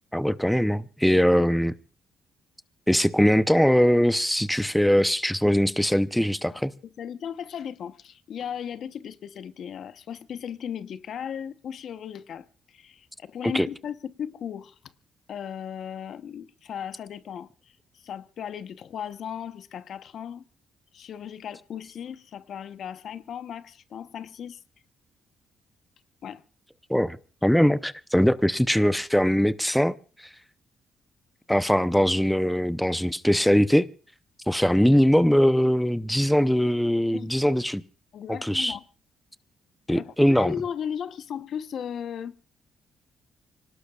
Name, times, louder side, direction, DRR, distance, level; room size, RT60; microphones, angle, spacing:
voice 1, 0.1-1.7 2.9-6.7 13.5-13.7 26.9-27.2 27.4-30.0 31.5-33.9 34.5-37.8 38.4-38.7 39.9-40.5, equal, 5° left, 0.7 m, -21 dB
voice 2, 6.5-14.8 15.3-20.4 20.9-24.6 26.2-26.4 37.1-37.3 38.1-38.8 39.9-42.4, left 8 dB, 65° left, 1.0 m, -36 dB
26.0 x 18.5 x 2.4 m
cardioid pair, 90°, 0 cm